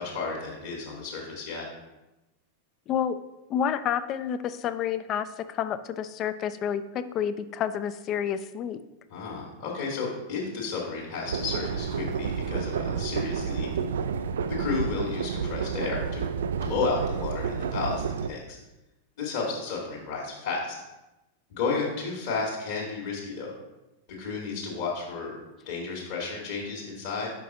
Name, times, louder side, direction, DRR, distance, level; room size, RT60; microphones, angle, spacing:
voice 1, 0.0-1.7 9.1-13.7 14.5-16.2 16.6-18.6 19.2-20.7 21.5-23.5 24.1-25.3 25.7-27.3, left 4 dB, 50° left, -4 dB, 1.4 m, -32 dB
voice 2, 2.9-3.2 3.5-8.8, left 8 dB, 35° left, 12 dB, 0.4 m, -29 dB
sound 1, 11.3-18.3, right 6 dB, 65° right, 0.3 m, -30 dB
5.5 x 5.3 x 3.9 m, 1.0 s
figure-of-eight pair, 90°, 0 cm